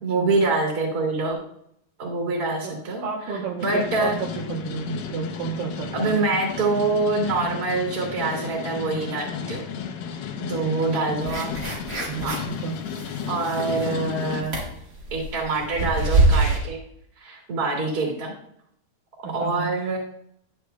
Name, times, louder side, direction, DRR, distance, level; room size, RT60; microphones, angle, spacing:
voice 1, 0.0-1.4 2.0-3.0 3.6-4.2 5.9-9.6 10.5-11.5 12.2-12.4 13.3-14.6 15.1-16.8 17.2-18.3 19.3-20.0, right 3 dB, 30° right, -1 dB, 2.4 m, -25 dB
voice 2, 3.0-6.2 10.4-10.7 12.1-12.8 19.2-19.7, right 6 dB, 70° right, -3 dB, 2.3 m, -32 dB
sound 1, 3.6-14.4, left 7 dB, 75° left, 2.7 m, -33 dB
sound 2, 11.3-12.5 12.9-14.0 14.4-16.6, right 2 dB, 45° right, 1.0 m, -24 dB
11.5 x 7.8 x 2.3 m, 0.70 s
omnidirectional pair, 4.6 m